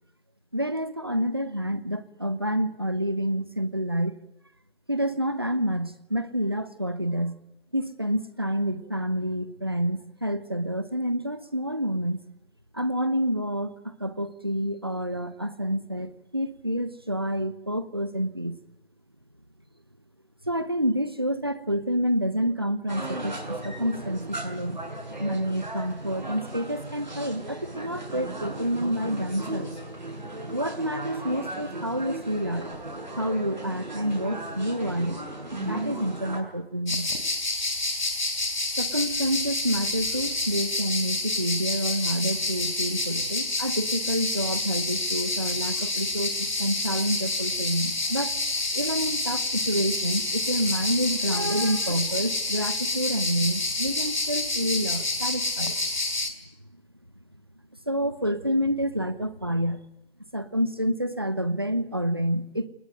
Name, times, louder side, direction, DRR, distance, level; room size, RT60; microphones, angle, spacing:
voice 1, 0.5-4.1 4.9-7.4 7.7-12.2 12.7-18.5 20.4-24.8 25.2-29.8 30.5-32.7 33.2-35.2 35.6-37.1 38.8-48.4 48.7-55.8 57.9-59.8 60.3-62.7, equal, 25° right, 13 dB, 1.0 m, -28 dB
sound 1, 22.9-36.4, right 1 dB, 45° right, 6.5 m, -36 dB
sound 2, 36.9-56.3, left 2 dB, 50° left, 4.2 m, -28 dB
28.5 x 20.5 x 9.3 m, 0.87 s
figure-of-eight pair, 170°, 31 cm